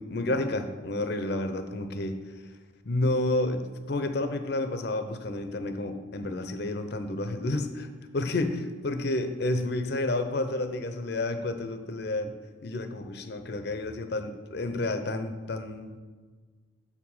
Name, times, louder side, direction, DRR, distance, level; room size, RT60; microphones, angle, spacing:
voice 1, 0.0-2.2 2.9-7.9 8.1-12.3 12.6-16.0, left 2 dB, 55° left, 8 dB, 0.6 m, -30 dB
6.6 x 4.9 x 5.4 m, 1.4 s
head